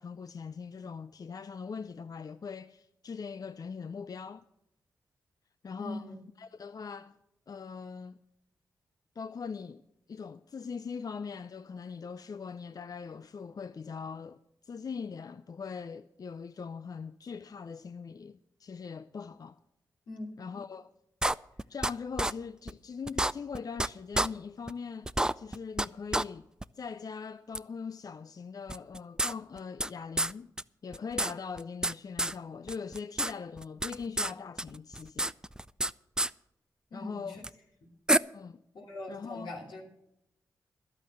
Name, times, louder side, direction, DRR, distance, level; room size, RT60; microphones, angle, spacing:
voice 1, 0.0-4.4 5.6-6.1 6.4-7.2 7.5-8.2 9.2-9.8 10.1-19.6 20.4-20.9 21.7-26.5 26.7-30.5 30.8-35.3 36.9-37.4 38.3-38.6 39.1-39.5, left 5 dB, 50° left, 0.4 m, -41 dB
voice 2, 5.8-6.1 20.1-20.3 36.9-37.4 38.7-39.9, left 1 dB, 85° left, 2.8 m, -41 dB
sound 1, 21.2-21.9 22.2-22.3 22.7-22.8 23.1-23.9 24.1-24.3 24.7-24.8 25.1-25.9 26.1-26.2 26.6-26.7 27.5-27.6 28.7-29.9 30.2-30.3 30.6-30.7 30.9-32.3 32.7-33.3 33.6-34.3 34.6-35.9 36.2-36.3 37.4-37.5 38.1-38.2, right 1 dB, 10° right, 0.4 m, -28 dB
11.5 x 8.8 x 7.4 m
supercardioid pair, 40°, 8 cm